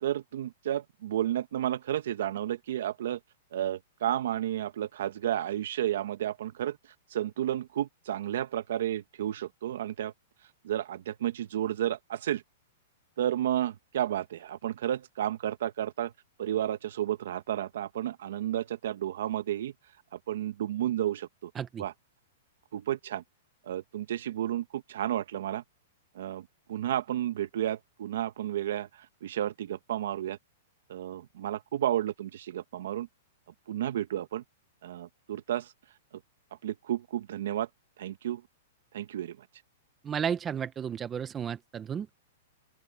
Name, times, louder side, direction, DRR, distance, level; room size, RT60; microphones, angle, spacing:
voice 1, 0.0-3.2 3.5-6.8 7.1-10.1 10.6-12.4 13.2-16.1 16.4-19.7 20.3-21.5 21.8-21.9 22.7-23.2 23.7-25.6 26.1-30.4 30.9-33.1 33.7-34.4 34.8-35.7 36.6-37.7 38.0-38.4 38.9-39.5, right 11 dB, 70° right, 1.4 m, -32 dB
voice 2, 40.0-42.1, right 8 dB, 15° right, 0.7 m, -33 dB
open air
hypercardioid pair, 160°, 0 cm